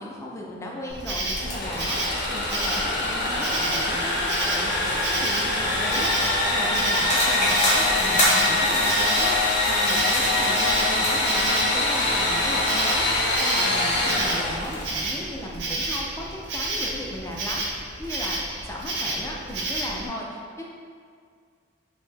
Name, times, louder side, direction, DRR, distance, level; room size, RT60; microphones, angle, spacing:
voice 1, 0.0-13.1 13.4-18.4 18.6-20.6, left 1 dB, 15° left, -2 dB, 0.3 m, -36 dB
Insect, 0.9-20.1, right 2 dB, 65° right, 0.5 m, -31 dB
Engine / Sawing, 1.3-15.0, left 2 dB, 65° left, 0.6 m, -24 dB
sound 1, 7.1-11.7, equal, 35° left, 0.8 m, -27 dB
2.6 x 2.1 x 3.3 m, 2.1 s
head